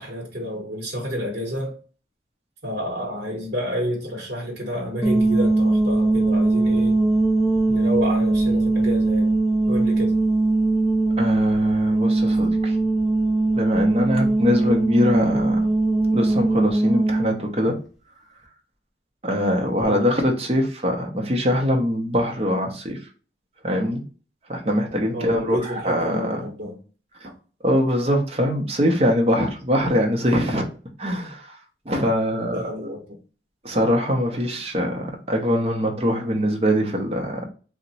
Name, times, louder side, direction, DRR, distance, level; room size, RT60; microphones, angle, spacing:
voice 1, 0.0-1.8 2.6-7.0 7.7-9.3 9.7-10.2 19.8-20.1 25.1-26.8 27.2-27.3 32.3-33.2, equal, 70° right, 0.8 m, -29 dB
sound 1, 5.0-17.4, right 2 dB, ahead, 0.5 m, -20 dB
voice 2, 11.2-12.8 13.5-15.6 16.1-17.8 19.2-23.0 23.6-24.0 24.5-26.4 27.2-27.3 27.6-30.7 31.0-31.6 31.9-32.6 33.6-37.5, equal, 35° right, 0.6 m, -23 dB
2.8 x 2.1 x 3.9 m
head